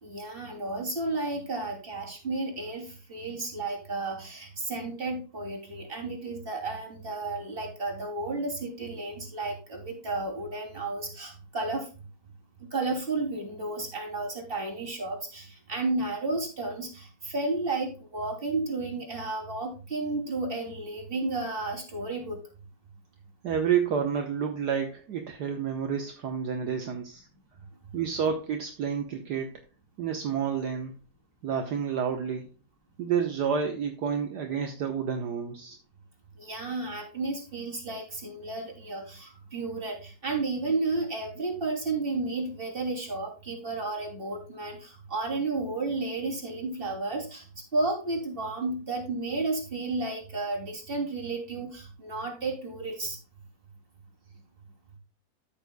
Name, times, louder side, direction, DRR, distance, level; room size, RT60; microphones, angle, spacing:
voice 1, 0.0-11.9 12.7-22.4 36.4-47.4 47.7-53.2, right 3 dB, 30° right, 1 dB, 3.3 m, -32 dB
voice 2, 23.4-27.3 27.9-29.5 30.0-30.9 31.4-32.5 33.0-35.8, right 7 dB, 65° right, 4 dB, 1.6 m, -29 dB
14.0 x 6.9 x 2.2 m, 0.34 s
omnidirectional pair, 1.9 m